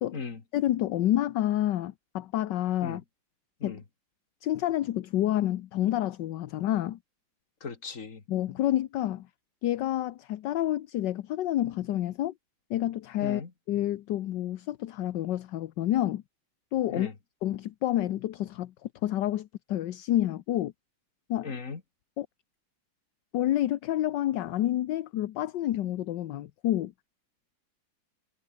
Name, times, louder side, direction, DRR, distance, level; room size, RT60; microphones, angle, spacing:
voice 1, 0.5-3.0 3.6-3.8 4.4-7.0 8.3-9.3 9.6-12.3 12.7-13.4 13.7-16.2 16.7-17.1 17.4-18.7 19.0-20.7 21.3-21.5 22.2-22.3 23.3-26.9, left 13 dB, 65° left, 1.4 m, -28 dB
voice 2, 7.6-8.2 13.2-13.5 16.9-17.1 21.4-21.8, left 5 dB, 40° left, 2.6 m, -37 dB
omnidirectional pair, 2.2 m